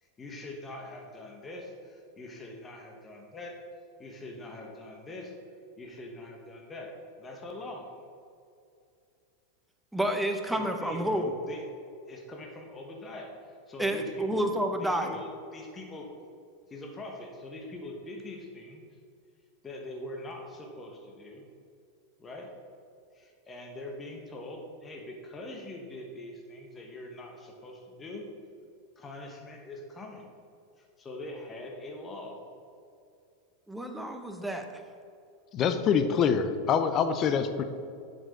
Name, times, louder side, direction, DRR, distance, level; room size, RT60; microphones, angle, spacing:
voice 1, 0.0-3.6 4.0-5.4 5.8-7.9 10.5-11.7 12.1-16.1 16.7-18.8 19.6-21.5 22.2-22.5 23.1-28.3 29.0-30.3 30.8-32.4, left 2 dB, 20° left, 1 dB, 1.2 m, -43 dB
voice 2, 9.9-11.3 13.8-15.1 33.7-34.7, right 1 dB, 5° right, 5 dB, 0.8 m, -29 dB
voice 3, 35.5-37.6, left 7 dB, 40° left, 10 dB, 0.5 m, -25 dB
7.4 x 5.3 x 5.0 m, 2.4 s
hypercardioid pair, 95°, 0 cm